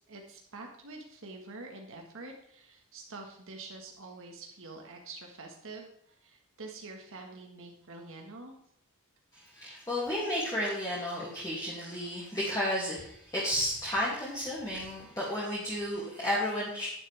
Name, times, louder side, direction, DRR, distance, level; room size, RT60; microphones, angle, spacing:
voice 1, 0.0-8.6, right 3 dB, 60° right, 2 dB, 1.7 m, -46 dB
voice 2, 9.3-16.9, equal, 15° left, -7 dB, 2.5 m, -32 dB
11.0 x 10.5 x 3.5 m, 0.72 s
head